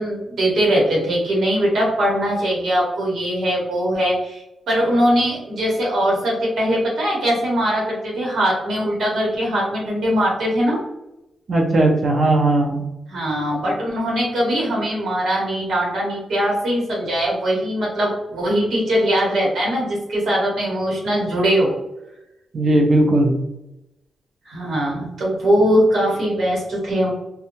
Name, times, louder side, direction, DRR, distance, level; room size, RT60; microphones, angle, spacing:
voice 1, 0.0-10.8 13.1-21.7 24.4-27.1, equal, 70° right, -4 dB, 1.0 m, -21 dB
voice 2, 11.5-12.8 22.5-23.3, right 1 dB, 50° right, 0 dB, 0.5 m, -17 dB
2.6 x 2.2 x 2.9 m, 0.91 s
wide cardioid pair, 130°, 0 cm